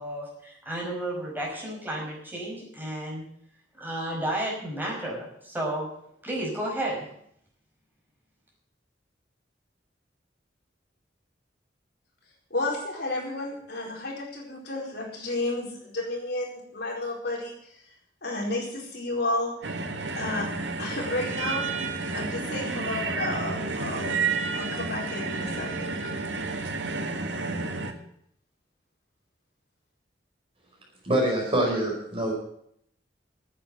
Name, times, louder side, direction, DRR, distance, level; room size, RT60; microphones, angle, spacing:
voice 1, 0.0-3.3 3.8-5.9 6.2-7.0, right 1 dB, 10° right, -2 dB, 5.4 m, -32 dB
voice 2, 12.5-17.7 18.2-19.5 20.2-20.5 20.8-21.9 22.1-26.2, left 2 dB, 65° left, -1 dB, 4.5 m, -32 dB
sound 1, 19.6-27.9, right 4 dB, 85° right, 1.9 m, -31 dB
voice 3, 31.0-32.3, right 1 dB, 30° right, -1 dB, 5.0 m, -25 dB
10.0 x 8.6 x 9.8 m, 0.69 s
head